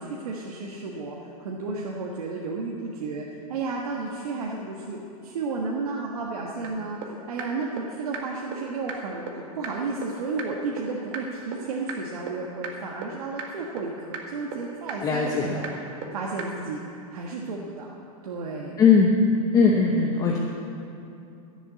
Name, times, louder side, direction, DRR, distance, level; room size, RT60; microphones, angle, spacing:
voice 1, 0.0-16.8 17.1-18.0 18.2-18.8, right 3 dB, 90° right, -2 dB, 1.5 m, -33 dB
sound 1, 6.6-6.7 7.0-7.1 7.4-7.5 7.8-7.9 8.1-8.2 8.5-8.6 8.9-9.0 9.3-9.4 9.6-9.7 10.0-10.1 10.4-10.5 10.8-10.9 11.1-11.2 11.5-11.6 11.9-12.0 12.3-12.4 12.6-12.7 13.0-13.1 13.4-13.5 13.8-13.9 14.1-14.2 14.5-14.6 14.9-15.0 15.3-15.4 15.6-15.7 16.0-16.1 16.4-16.5, right 8 dB, 50° right, 1.8 m, -34 dB
voice 2, 15.0-15.6 18.8-19.2 19.5-20.4, left 5 dB, 20° left, -1 dB, 1.0 m, -19 dB
15.0 x 7.2 x 8.3 m, 2.7 s
supercardioid pair, 150°, 19 cm